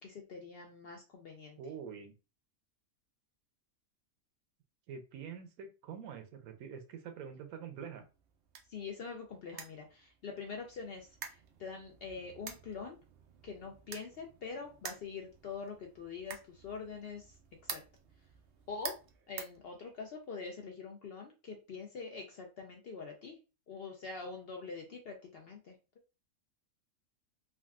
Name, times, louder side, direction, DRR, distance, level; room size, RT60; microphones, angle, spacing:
voice 1, 0.0-1.6 8.7-13.0 13.4-17.3 17.6-17.8 18.7-19.0 19.3-23.4 23.7-25.8, left 5 dB, 65° left, 1 dB, 0.6 m, -44 dB
voice 2, 1.6-2.1 4.9-8.0, right 7 dB, 90° right, 7 dB, 1.1 m, -45 dB
sound 1, 8.0-20.3, right 7 dB, 70° right, 0.5 m, -50 dB
3.6 x 2.2 x 2.3 m, 0.31 s
omnidirectional pair, 1.5 m